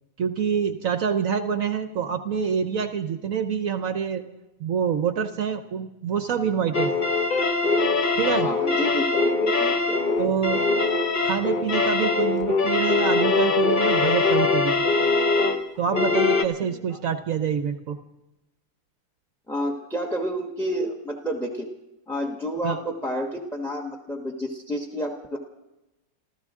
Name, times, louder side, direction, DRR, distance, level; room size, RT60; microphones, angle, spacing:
voice 1, 0.2-4.2 4.6-7.0 8.2-8.5 10.2-10.6 11.2-15.1 15.8-18.0 22.6-22.8, right 7 dB, 60° right, 9 dB, 1.0 m, -26 dB
Creepy walking music, 6.7-16.4, left 3 dB, 50° left, 0.5 m, -22 dB
voice 2, 8.4-10.0 16.7-17.0 19.5-21.7 22.1-25.4, equal, ahead, 2 dB, 0.8 m, -30 dB
28.0 x 14.0 x 3.6 m, 0.99 s
omnidirectional pair, 2.0 m